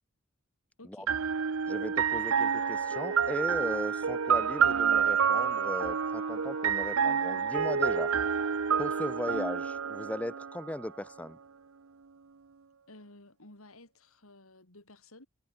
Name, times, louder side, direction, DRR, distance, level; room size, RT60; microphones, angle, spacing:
voice 1, 0.8-1.1 12.9-15.3, left 2 dB, 75° left, 5.0 m, -54 dB
sound 1, 1.1-10.9, right 7 dB, 70° right, 0.7 m, -28 dB
voice 2, 1.7-8.1 8.8-11.4, left 1 dB, 5° left, 0.7 m, -37 dB
Trumpet, 2.4-9.3, left 4 dB, 55° left, 2.3 m, -51 dB
head